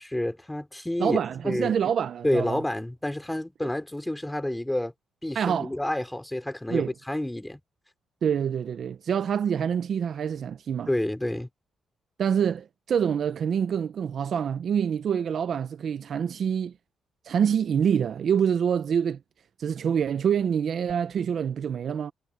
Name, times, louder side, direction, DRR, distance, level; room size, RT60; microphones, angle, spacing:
voice 1, 0.0-1.2 1.4-1.7 2.2-4.9 5.2-7.6 10.9-11.5, left 1 dB, 5° left, 4.8 m, -29 dB
voice 2, 1.0-2.6 5.3-5.7 6.7-6.9 8.2-10.9 12.2-16.7 17.2-19.2 19.6-22.1, right 8 dB, 55° right, 0.7 m, -26 dB
cardioid pair, 110°, 0 cm